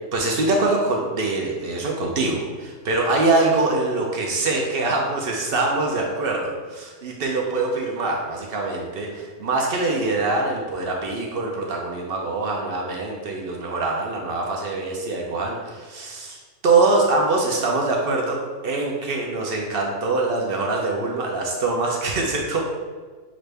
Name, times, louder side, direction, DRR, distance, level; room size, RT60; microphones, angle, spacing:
voice 1, 0.1-16.4 16.6-22.6, right 3 dB, 60° right, 0 dB, 0.6 m, -24 dB
6.1 x 2.5 x 3.3 m, 1.4 s
omnidirectional pair, 1.7 m